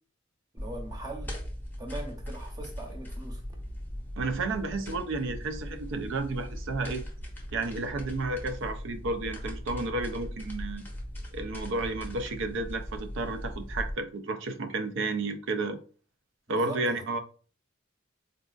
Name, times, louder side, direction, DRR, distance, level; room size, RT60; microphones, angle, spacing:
voice 1, 0.5-1.3 1.8-3.4 16.5-17.0, right 2 dB, 20° right, 0.8 m, -41 dB
sound 1, 0.6-13.9, equal, 10° left, 0.7 m, -39 dB
voice 2, 4.2-7.0 7.5-10.8 11.3-15.8 16.5-17.2, right 3 dB, 65° right, 0.5 m, -32 dB
3.9 x 2.4 x 2.4 m
head